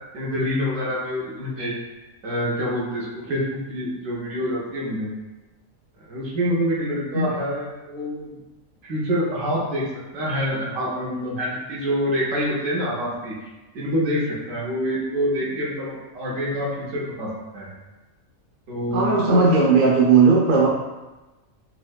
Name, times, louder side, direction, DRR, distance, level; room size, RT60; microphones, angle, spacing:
voice 1, 0.1-1.7 2.2-5.1 6.0-8.4 8.9-9.8 10.1-13.3 13.7-14.2 14.5-17.7 18.7-19.8, equal, 70° right, -5 dB, 1.1 m, -26 dB
voice 2, 18.9-20.7, right 4 dB, 50° right, -4 dB, 0.6 m, -16 dB
4.3 x 2.1 x 2.3 m, 1.1 s
omnidirectional pair, 1.4 m